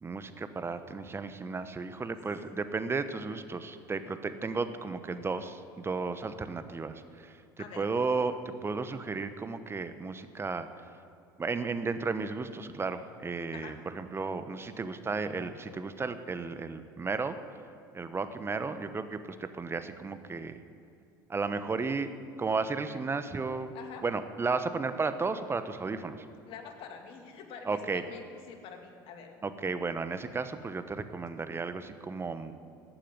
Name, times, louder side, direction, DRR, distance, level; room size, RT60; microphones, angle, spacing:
voice 1, 0.0-10.7 11.4-17.4 17.9-20.6 21.3-22.1 22.4-23.7 24.0-26.2 27.6-28.0 29.4-32.5, right 4 dB, 20° right, 10 dB, 1.0 m, -34 dB
voice 2, 7.6-7.9 13.5-13.7 23.7-24.0 26.5-29.3, left 6 dB, 55° left, 4 dB, 2.1 m, -46 dB
14.5 x 9.1 x 9.2 m, 2.4 s
hypercardioid pair, 70°, 11 cm